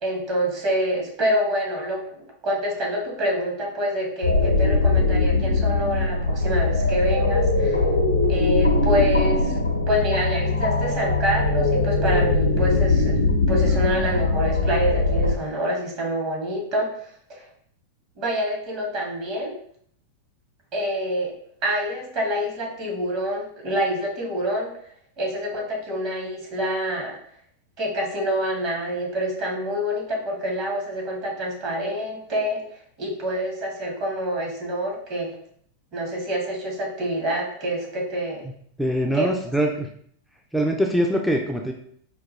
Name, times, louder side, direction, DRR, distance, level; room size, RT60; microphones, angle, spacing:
voice 1, 0.0-2.2 2.4-7.8 8.3-9.6 9.9-13.2 13.5-16.9 17.3-17.5 18.2-19.5 20.7-21.3 21.6-24.7 25.2-27.2 27.8-32.6 33.0-35.3 35.9-38.5 39.1-39.3, equal, 40° right, -1 dB, 1.1 m, -26 dB
sound 1, 4.2-15.3, left 3 dB, 85° left, 0.6 m, -21 dB
voice 2, 38.8-39.9 40.5-41.7, equal, ahead, 1 dB, 0.4 m, -23 dB
4.5 x 2.3 x 3.1 m, 0.64 s
figure-of-eight pair, 90°, 0 cm